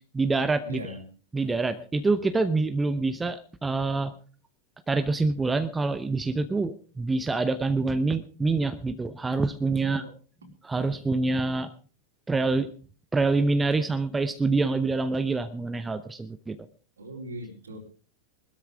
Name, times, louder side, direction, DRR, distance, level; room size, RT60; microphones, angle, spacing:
voice 1, 0.1-0.8 1.3-4.1 4.9-10.0 10.6-11.7 12.3-12.7 13.1-16.6, right 3 dB, 10° right, 11 dB, 0.8 m, -26 dB
voice 2, 0.7-1.1 9.8-10.1 17.0-17.8, equal, 70° right, 3 dB, 4.0 m, -39 dB
21.5 x 13.0 x 3.5 m, 0.37 s
figure-of-eight pair, 90°, 0 cm